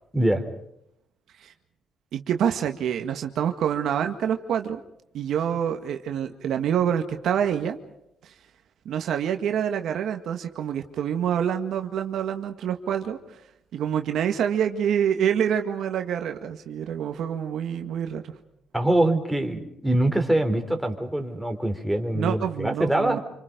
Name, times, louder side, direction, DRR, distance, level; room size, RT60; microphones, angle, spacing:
voice 1, 0.1-0.4 18.7-23.2, right 1 dB, ahead, 4 dB, 3.9 m, -24 dB
voice 2, 2.1-4.8 5.1-7.8 8.9-13.2 13.7-18.3 22.1-23.2, right 9 dB, 75° right, 6 dB, 1.8 m, -26 dB
28.5 x 25.0 x 5.2 m, 0.77 s
cardioid pair, 90°, 0 cm